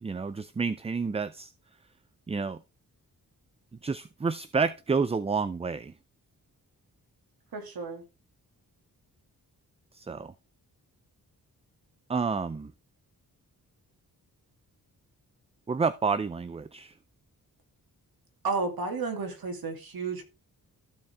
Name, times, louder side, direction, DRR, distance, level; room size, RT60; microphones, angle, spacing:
voice 1, 0.0-1.5 2.3-2.6 3.8-5.9 9.9-10.3 12.1-12.7 15.7-16.9, right 5 dB, 15° right, 0.4 m, -29 dB
voice 2, 7.5-8.0 18.4-20.2, right 4 dB, 70° right, 2.4 m, -32 dB
14.5 x 4.9 x 3.4 m
wide cardioid pair, 100°, 37 cm